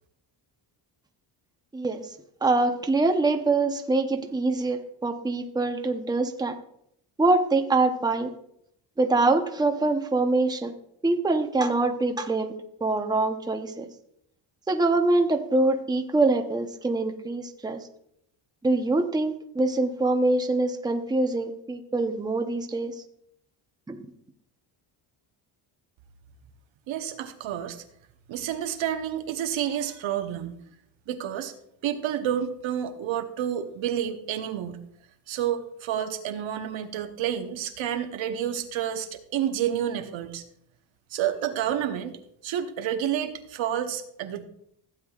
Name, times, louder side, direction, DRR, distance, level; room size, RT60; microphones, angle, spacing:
voice 1, 1.7-2.1 2.4-6.6 7.2-8.3 9.0-10.7 11.0-12.5 12.8-13.9 14.7-17.9 18.6-22.9 23.9-24.0, right 2 dB, 10° right, 5 dB, 0.8 m, -24 dB
voice 2, 26.9-27.8 28.3-30.6 31.1-31.5 31.8-34.8 35.3-40.4 41.1-44.4, right 10 dB, 70° right, 7 dB, 1.1 m, -29 dB
15.5 x 8.1 x 2.4 m, 0.73 s
cardioid pair, 105°, 47 cm